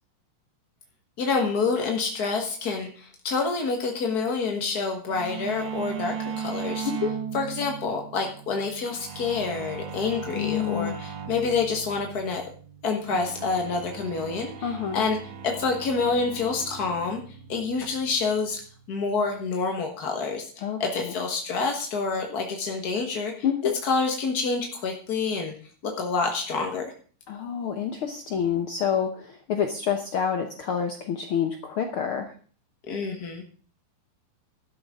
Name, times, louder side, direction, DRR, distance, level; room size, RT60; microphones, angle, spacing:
voice 1, 1.2-6.9 7.3-12.4 12.8-15.2 15.4-17.2 17.5-18.6 18.9-23.3 23.8-25.5 25.8-26.9 32.8-33.4, left 4 dB, 55° left, 2 dB, 1.1 m, -27 dB
sound 1, 5.1-19.5, right 7 dB, 85° right, 2.8 m, -38 dB
voice 2, 6.8-7.2 10.3-11.0 14.6-15.1 20.6-21.1 23.4-23.7 27.3-32.3, left 8 dB, 80° left, 5 dB, 1.2 m, -28 dB
12.5 x 12.0 x 3.7 m, 0.43 s
omnidirectional pair, 3.9 m